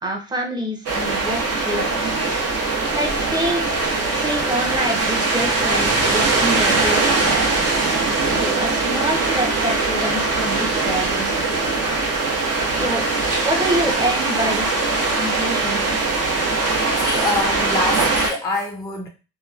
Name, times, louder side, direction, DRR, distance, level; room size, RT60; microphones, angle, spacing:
voice 1, 0.0-2.2 2.9-3.8 4.1-7.5 8.2-11.7 12.8-13.1 13.4-15.8, right 1 dB, 15° right, 0.8 m, -27 dB
sound 1, 0.9-18.3, right 3 dB, 55° right, 0.9 m, -21 dB
voice 2, 16.6-19.1, left 2 dB, 10° left, 0.5 m, -26 dB
2.9 x 2.2 x 2.4 m
cardioid pair, 90°, 30 cm